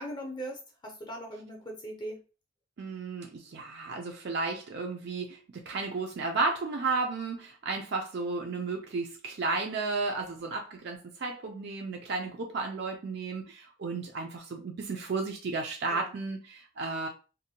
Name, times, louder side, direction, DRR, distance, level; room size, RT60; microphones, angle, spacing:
voice 1, 0.0-2.2 15.9-16.1, right 1 dB, 20° left, 1 dB, 0.6 m, -40 dB
voice 2, 2.8-17.1, right 3 dB, 55° right, 2 dB, 0.4 m, -33 dB
2.6 x 2.1 x 2.7 m, 0.34 s
head